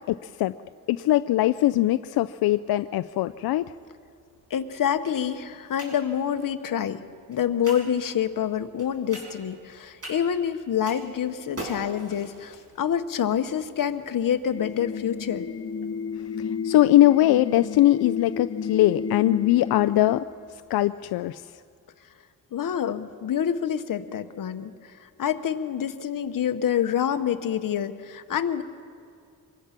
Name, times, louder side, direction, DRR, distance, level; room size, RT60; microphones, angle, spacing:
voice 1, 0.1-0.5 0.9-3.7 16.6-20.2 20.7-21.4, left 14 dB, 90° left, 12 dB, 0.5 m, -21 dB
sound 1, 3.2-21.1, right 1 dB, 40° right, 6.7 m, -47 dB
voice 2, 4.5-7.0 7.3-15.5 22.5-28.6, left 9 dB, 65° left, 9 dB, 1.2 m, -27 dB
sound 2, 14.5-20.2, left 6 dB, 40° left, 1.5 m, -32 dB
24.5 x 20.5 x 5.9 m, 2.4 s
cardioid pair, 90°, 36 cm